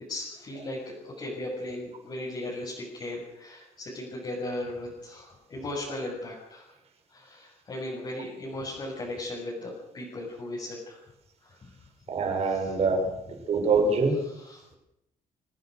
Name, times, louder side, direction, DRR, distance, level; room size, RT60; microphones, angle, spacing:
voice 1, 0.1-6.7 7.1-11.0 11.4-11.7 12.4-12.7 14.2-14.6, left 1 dB, 30° left, -5 dB, 7.2 m, -37 dB
voice 2, 12.1-13.0 13.5-14.2, right 4 dB, 45° right, 4 dB, 6.2 m, -24 dB
27.5 x 18.0 x 6.6 m, 0.85 s
cardioid pair, 175°, 15 cm